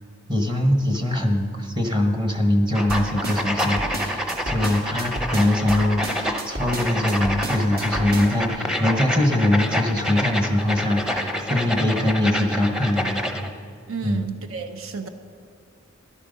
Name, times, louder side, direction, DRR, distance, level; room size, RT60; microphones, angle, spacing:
voice 1, 0.3-13.3 14.0-14.3, left 1 dB, 20° right, 4 dB, 1.1 m, -22 dB
sound 1, 2.7-13.5, left 1 dB, 5° right, 0.7 m, -28 dB
sound 2, 2.9-8.5, right 1 dB, 50° right, 1.5 m, -32 dB
voice 2, 13.9-15.1, right 5 dB, 85° right, 8 dB, 0.8 m, -31 dB
13.0 x 11.5 x 5.3 m, 2.4 s
head